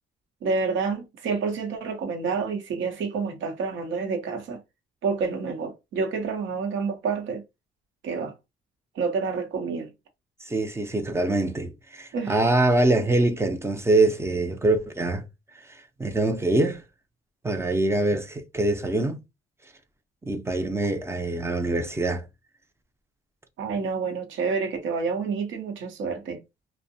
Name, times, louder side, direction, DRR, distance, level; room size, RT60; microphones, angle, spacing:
voice 1, 0.4-4.6 5.0-7.4 8.0-8.3 8.9-9.9 12.1-12.4 23.6-26.4, right 5 dB, 75° right, 0.8 m, -28 dB
voice 2, 10.5-15.2 15.7-16.8 17.4-19.2 20.2-22.3, right 2 dB, 15° right, 0.5 m, -24 dB
2.6 x 2.1 x 2.6 m
cardioid pair, 90°, 20 cm